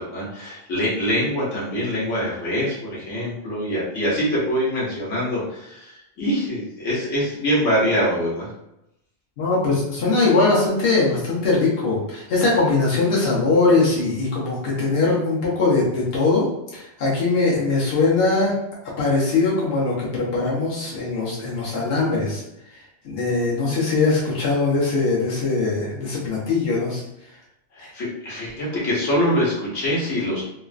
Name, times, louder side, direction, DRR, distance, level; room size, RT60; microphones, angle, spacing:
voice 1, 0.0-8.5 27.7-30.4, equal, 80° left, -6 dB, 1.3 m, -24 dB
voice 2, 9.4-16.4 16.7-18.5 19.0-22.4 23.0-27.0 27.8-27.9, left 3 dB, 55° left, -7 dB, 1.1 m, -21 dB
3.6 x 2.1 x 2.4 m, 0.84 s
omnidirectional pair, 1.3 m